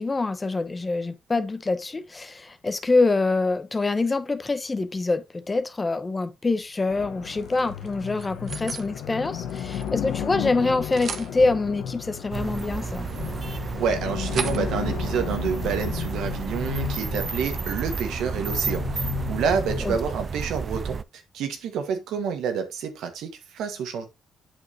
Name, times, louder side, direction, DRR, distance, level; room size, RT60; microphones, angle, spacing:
voice 1, 0.0-13.1 19.8-19.9, left 3 dB, 25° left, 0.9 m, -25 dB
sound 1, 6.9-19.8, left 9 dB, 80° left, 1.2 m, -33 dB
sound 2, 7.4-8.9 9.3-10.5 10.7-11.3 12.2-17.2 17.5-17.7 18.1-19.6, right 6 dB, 55° right, 1.0 m, -40 dB
sound 3, 12.3-21.0, right 5 dB, 40° right, 0.3 m, -31 dB
voice 2, 13.8-24.1, right 6 dB, 80° right, 1.5 m, -28 dB
8.1 x 6.5 x 2.8 m
cardioid pair, 90°, 0 cm